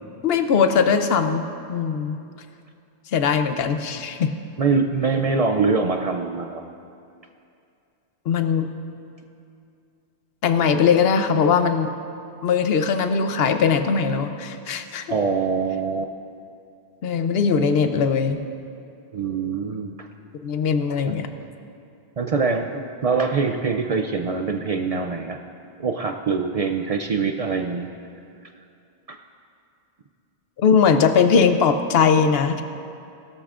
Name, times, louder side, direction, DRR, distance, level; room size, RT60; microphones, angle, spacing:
voice 1, 0.2-2.2 3.1-4.3 8.3-8.7 10.4-11.9 12.4-15.0 17.0-18.4 20.4-21.3 30.6-32.6, left 6 dB, 70° left, 8 dB, 0.9 m, -20 dB
voice 2, 4.6-6.6 15.1-16.1 19.1-20.1 21.1-21.2 22.2-25.4 25.8-27.9 29.1-29.2, right 4 dB, 55° right, 4 dB, 0.4 m, -24 dB
17.0 x 12.5 x 2.5 m, 2.5 s
omnidirectional pair, 1.1 m